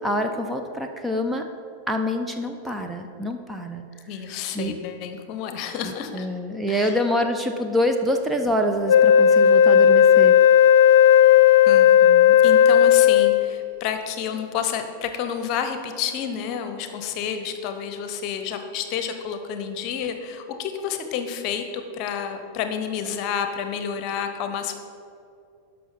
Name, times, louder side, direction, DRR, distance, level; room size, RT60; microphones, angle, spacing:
voice 1, 0.0-1.5 1.9-3.9 4.5-4.8 6.1-10.4, equal, 5° right, 4 dB, 0.7 m, -25 dB
voice 2, 4.1-6.3 6.7-7.0 11.6-24.8, left 8 dB, 40° left, 7 dB, 0.9 m, -30 dB
Wind instrument woodwind instrument, 8.9-13.6, left 9 dB, 60° left, 0.4 m, -14 dB
12.0 x 5.8 x 5.6 m, 2.5 s
figure-of-eight pair, 90°, 0 cm